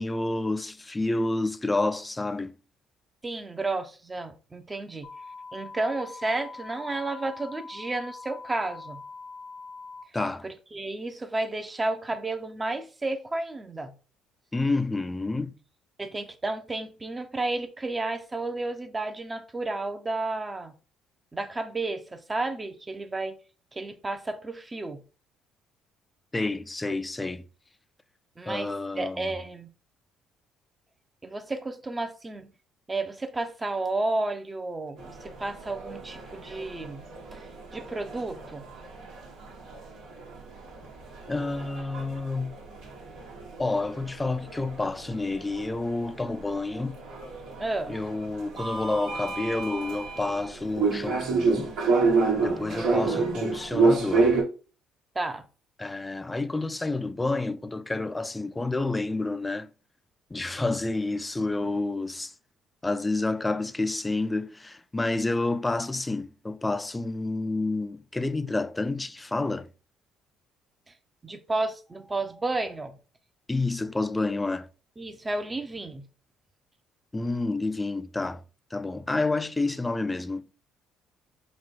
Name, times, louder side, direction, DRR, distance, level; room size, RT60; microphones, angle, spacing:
voice 1, 0.0-2.5 10.1-10.5 14.5-15.6 26.3-27.4 28.5-29.3 41.3-42.6 43.6-47.0 47.9-51.7 52.4-54.3 55.8-59.7 60.3-62.3 62.8-69.7 73.5-74.7 77.1-78.4 78.7-80.5, left 2 dB, 15° left, 0.4 m, -29 dB
voice 2, 3.2-5.1 5.5-9.0 10.4-13.9 16.0-20.7 21.3-23.4 23.7-25.0 28.4-29.7 31.2-32.5 32.9-37.0 37.3-37.4 37.7-38.6 47.6-48.0 52.7-53.1 55.1-55.4 71.2-73.0 75.0-76.1, right 2 dB, 20° right, 0.7 m, -32 dB
sound 1, 5.0-10.0, left 4 dB, 85° left, 0.7 m, -43 dB
sound 2, 35.0-54.4, right 4 dB, 75° right, 1.4 m, -29 dB
4.2 x 2.3 x 4.4 m
supercardioid pair, 70°, 0 cm